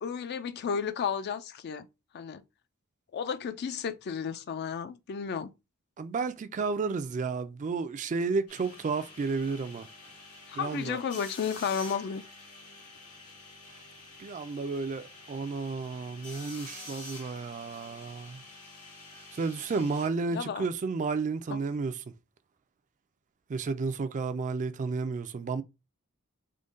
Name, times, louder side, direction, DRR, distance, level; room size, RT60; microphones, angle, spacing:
voice 1, 0.0-1.9 2.1-2.4 3.1-5.5 10.5-12.2 20.3-20.7 21.5-21.6, left 7 dB, 50° left, 0.3 m, -33 dB
voice 2, 6.0-9.9 10.5-11.0 14.2-18.4 19.3-22.0 23.5-25.6, right 4 dB, 35° right, 0.3 m, -32 dB
sound 1, 8.5-20.1, left 2 dB, 90° left, 1.9 m, -48 dB
3.8 x 2.1 x 3.7 m
head